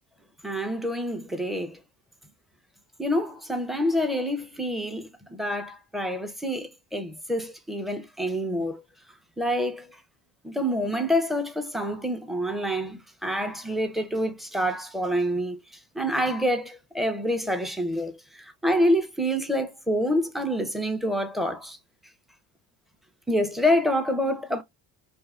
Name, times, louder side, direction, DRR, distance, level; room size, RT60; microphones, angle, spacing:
voice 1, 0.4-1.8 3.0-8.8 9.4-9.8 10.4-15.6 16.0-18.2 18.6-21.8 23.3-24.6, equal, ahead, 0.4 m, -27 dB
2.7 x 2.5 x 2.3 m
hypercardioid pair, 55°, 50 cm